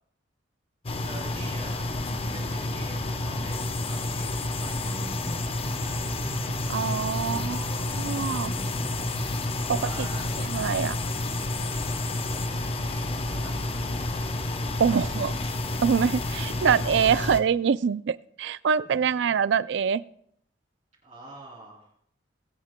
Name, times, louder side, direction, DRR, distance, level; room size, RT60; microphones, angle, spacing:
sound 1, 0.9-17.4, left 2 dB, 30° left, 0.7 m, -30 dB
voice 1, 1.0-5.3 5.7-6.2 7.1-8.0 8.7-9.3 9.7-10.3 11.8-14.3 15.0-15.2 18.9-19.1 21.0-21.9, right 2 dB, 40° right, -5 dB, 3.0 m, -46 dB
sound 2, 4.8-11.2, right 1 dB, 5° right, 2.7 m, -42 dB
voice 2, 6.7-8.5 9.7-10.1 10.4-11.0 14.8-15.3 15.8-20.0, right 7 dB, 65° right, 17 dB, 0.4 m, -25 dB
22.5 x 8.8 x 2.2 m, 0.66 s
head